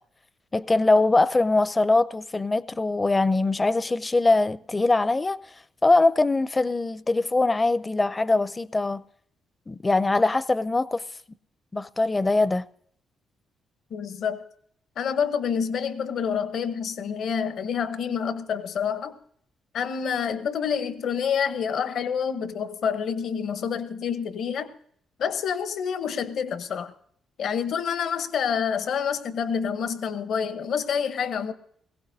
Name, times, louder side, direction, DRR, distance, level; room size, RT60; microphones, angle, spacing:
voice 1, 0.5-5.4 5.8-9.0 9.7-11.0 11.7-12.7, left 2 dB, 20° left, 0.5 m, -22 dB
voice 2, 13.9-14.4 15.0-19.2 19.7-24.7 25.2-26.9 27.4-31.5, left 7 dB, 65° left, 1.0 m, -28 dB
20.5 x 16.5 x 2.7 m
cardioid pair, 90°, 0 cm